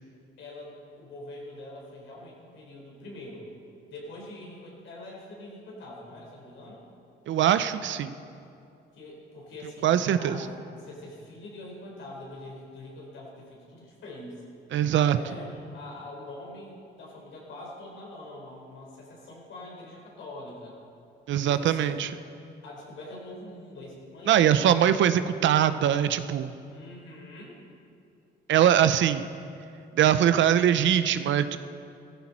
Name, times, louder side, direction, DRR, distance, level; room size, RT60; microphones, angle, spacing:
voice 1, 0.4-3.5 3.9-6.9 8.9-14.4 15.1-20.8 21.4-22.0 22.6-25.2 26.7-27.6, left 1 dB, 75° left, -2 dB, 4.5 m, -44 dB
voice 2, 7.3-8.1 9.8-10.4 14.7-15.2 21.3-22.1 24.3-26.5 28.5-29.3 29.9-31.6, right 10 dB, 70° right, 12 dB, 0.7 m, -22 dB
16.0 x 14.5 x 4.3 m, 2.5 s
cardioid pair, 90°, 20 cm